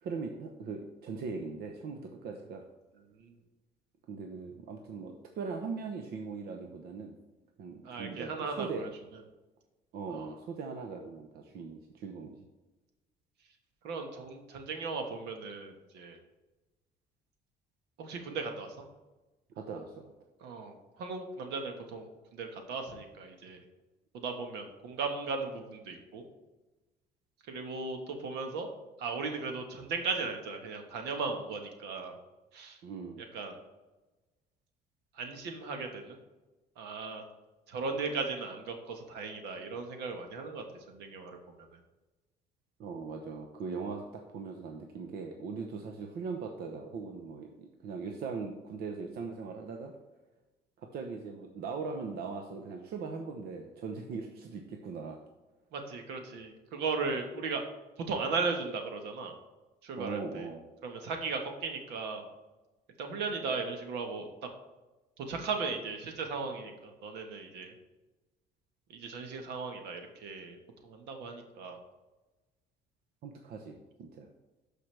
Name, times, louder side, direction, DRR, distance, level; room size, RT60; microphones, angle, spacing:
voice 1, 0.0-2.6 4.1-7.2 7.6-8.8 9.9-12.4 19.6-20.1 32.8-33.3 42.8-49.9 50.8-55.2 60.0-60.6 73.2-74.3, right 4 dB, 70° right, 3 dB, 0.9 m, -40 dB
voice 2, 7.8-8.9 10.1-10.3 13.8-16.2 18.0-18.7 20.4-23.6 24.1-26.2 27.5-28.7 29.0-32.2 32.5-32.8 33.2-33.5 35.1-36.2 36.8-37.2 37.7-41.4 41.7-41.8 55.7-57.6 58.0-59.3 59.8-60.5 60.8-62.2 63.0-64.3 65.2-67.7 68.9-70.6 70.8-71.8, right 4 dB, 85° right, 4 dB, 1.3 m, -37 dB
12.5 x 5.0 x 3.3 m, 1.1 s
cardioid pair, 110°, 17 cm